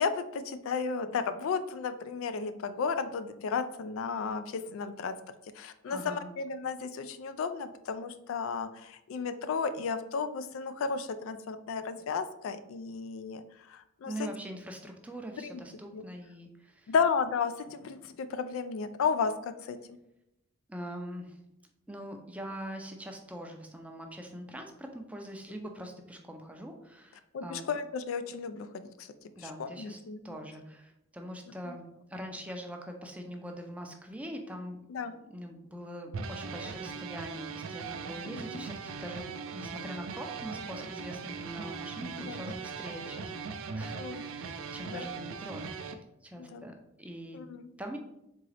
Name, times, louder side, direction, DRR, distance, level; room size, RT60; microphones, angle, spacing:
voice 1, 0.0-14.3 15.4-15.6 15.9-16.0 16.9-20.0 27.3-29.1 29.4-30.2 31.7-31.8 34.9-35.2 38.2-38.7 42.2-42.6 43.9-44.3 44.8-45.1 46.4-46.7 47.3-47.7, left 5 dB, 75° left, 11 dB, 0.3 m, -34 dB
voice 2, 5.9-6.3 14.1-16.9 20.7-21.4 21.9-27.7 29.3-31.8 32.1-34.8 35.3-47.4 47.8-48.0, equal, 5° right, 3 dB, 0.4 m, -43 dB
sound 1, 36.1-45.9, right 5 dB, 80° right, 0.4 m, -40 dB
3.8 x 3.6 x 3.2 m, 0.86 s
head